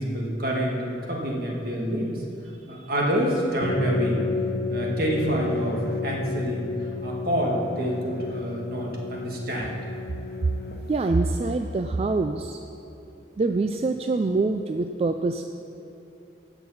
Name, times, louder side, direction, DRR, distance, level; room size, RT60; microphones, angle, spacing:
voice 1, 0.0-2.2 2.7-4.2 4.7-6.7 7.0-9.7, equal, 55° right, -2 dB, 1.9 m, -27 dB
sound 1, 3.6-11.1, left 3 dB, 60° left, 1.0 m, -31 dB
voice 2, 10.9-12.6 13.4-15.4, right 3 dB, 35° right, 6 dB, 0.3 m, -25 dB
16.0 x 6.0 x 5.6 m, 2.9 s
head